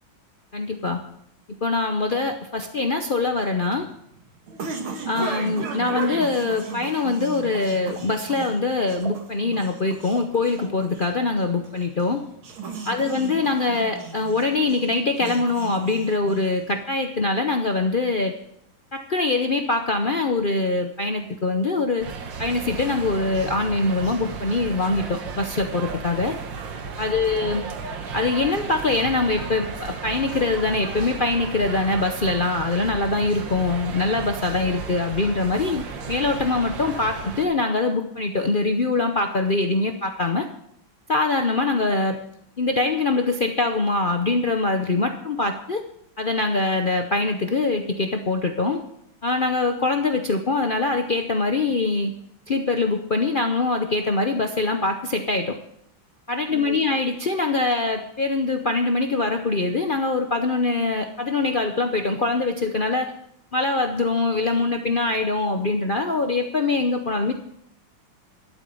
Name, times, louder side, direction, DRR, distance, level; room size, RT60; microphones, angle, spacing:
voice 1, 0.5-1.0 1.5-3.9 5.1-12.2 12.8-18.4 18.9-22.1 22.4-26.4 27.0-27.6 28.1-40.5 41.1-42.2 42.6-45.8 46.2-48.8 49.2-52.1 52.5-55.6 56.3-63.1 63.5-67.3, left 3 dB, 80° left, 5 dB, 0.4 m, -23 dB
sound 1, 3.3-16.8, right 4 dB, 90° right, 2.5 m, -36 dB
sound 2, 22.0-37.5, right 5 dB, 65° right, 1.9 m, -34 dB
12.5 x 8.3 x 6.9 m, 0.72 s
omnidirectional pair, 2.2 m